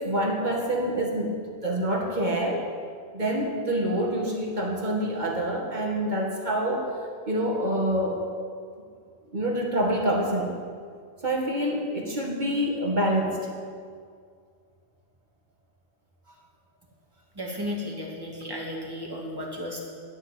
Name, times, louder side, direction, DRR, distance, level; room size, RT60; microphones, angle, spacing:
voice 1, 0.0-1.4 1.6-2.6 3.1-6.9 7.3-8.2 9.3-10.5 11.2-13.5, right 1 dB, 40° right, -1 dB, 2.2 m, -26 dB
voice 2, 17.4-19.8, left 1 dB, 20° right, -2 dB, 2.3 m, -34 dB
12.5 x 7.1 x 9.3 m, 2.1 s
omnidirectional pair, 1.2 m